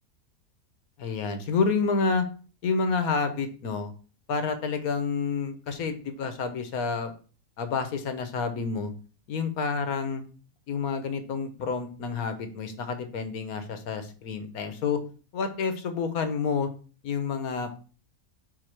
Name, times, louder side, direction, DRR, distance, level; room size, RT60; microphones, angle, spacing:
voice 1, 1.0-2.3 2.6-3.9 4.3-7.1 7.6-8.9 9.3-10.2 10.7-15.0 15.3-16.7 17.0-17.7, left 5 dB, 65° left, 8 dB, 1.4 m, -29 dB
5.0 x 4.1 x 5.8 m, 0.38 s
omnidirectional pair, 1.7 m